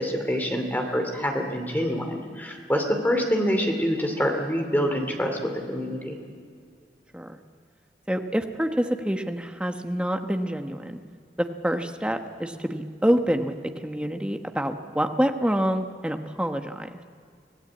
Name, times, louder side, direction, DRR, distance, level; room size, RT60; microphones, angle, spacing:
voice 1, 0.0-6.2, equal, 10° left, 3 dB, 2.5 m, -26 dB
voice 2, 8.1-11.0 11.4-16.9, equal, 5° right, 5 dB, 1.0 m, -27 dB
24.5 x 17.0 x 8.6 m, 2.2 s
head